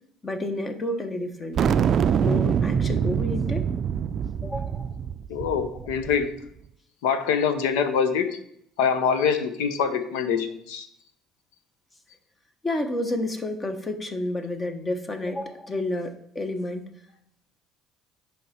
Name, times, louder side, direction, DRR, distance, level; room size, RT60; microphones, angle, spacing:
voice 1, 0.2-1.8 2.2-3.6 4.4-4.8 12.6-16.8, left 1 dB, 30° left, 7 dB, 1.1 m, -30 dB
sound 1, 1.6-6.2, right 7 dB, 50° right, 0.4 m, -24 dB
voice 2, 5.3-6.3 7.0-8.3 8.8-10.9, left 6 dB, 80° left, 10 dB, 0.8 m, -24 dB
10.0 x 3.5 x 4.3 m, 0.70 s
supercardioid pair, 70°, 0 cm